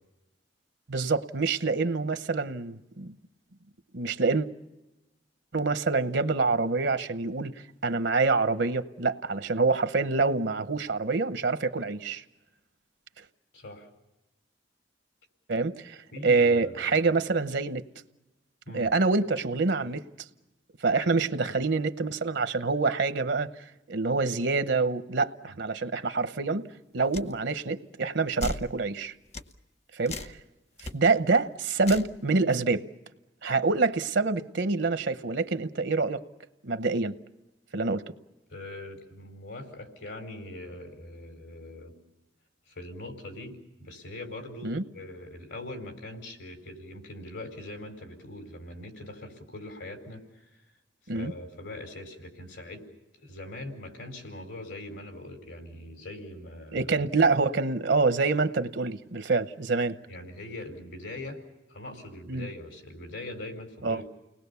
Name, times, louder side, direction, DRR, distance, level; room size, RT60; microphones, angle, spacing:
voice 1, 0.9-3.1 3.9-4.5 5.5-7.5 7.8-12.2 15.5-17.8 18.7-20.0 20.8-26.7 26.9-29.1 29.9-30.4 30.9-32.8 33.4-36.2 36.6-37.1 37.7-38.0 44.6-44.8 51.1-51.3 56.7-60.0 62.3-62.5 63.8-64.0, right 3 dB, 70° right, 0.9 m, -26 dB
voice 2, 13.5-13.9 16.1-16.8 18.7-18.9 25.4-25.6 38.5-41.9 42.7-50.6 51.1-52.8 53.2-56.9 60.1-61.4 61.7-64.1, left 1 dB, 75° left, 4.8 m, -42 dB
sound 1, 27.1-27.3 28.4-28.7 29.3-29.5 30.1-30.4 30.8-30.9 31.8-32.1, left 2 dB, 35° left, 1.0 m, -35 dB
30.0 x 20.0 x 6.9 m
head